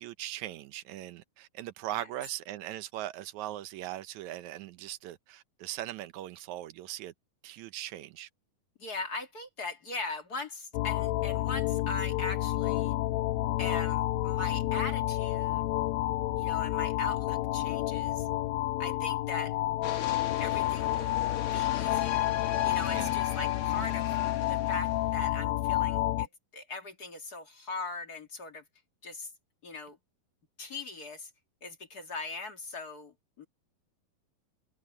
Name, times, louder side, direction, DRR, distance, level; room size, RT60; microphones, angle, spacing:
voice 1, 0.0-7.1 7.4-8.3 22.9-23.1 23.8-23.9, right 14 dB, 75° right, 1.8 m, -40 dB
voice 2, 8.8-12.9 13.6-15.7 16.3-18.3 18.8-19.6 20.4-21.2 21.5-22.3 22.6-28.6 29.0-29.3 29.6-30.0 30.6-31.3 31.6-33.5, left 3 dB, 35° left, 1.9 m, -40 dB
sound 1, 10.7-26.3, left 15 dB, 85° left, 2.5 m, -30 dB
sound 2, 19.8-25.3, left 10 dB, 55° left, 1.6 m, -39 dB
omnidirectional pair, 4.1 m